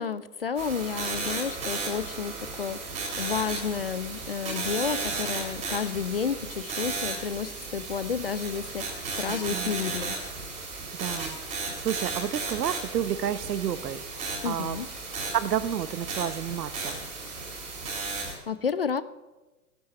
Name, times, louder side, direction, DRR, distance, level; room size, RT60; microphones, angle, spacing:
voice 1, 0.0-10.2 14.4-14.9 18.1-19.0, left 6 dB, 40° left, 15 dB, 0.4 m, -31 dB
sound 1, 0.6-18.3, right 3 dB, 15° right, 3.1 m, -34 dB
voice 2, 9.3-9.7 11.0-11.4 11.8-14.0 14.4-14.8 15.3-17.0, right 10 dB, 85° right, 14 dB, 1.2 m, -30 dB
16.0 x 11.5 x 6.8 m, 1.2 s
hypercardioid pair, 165°, 48 cm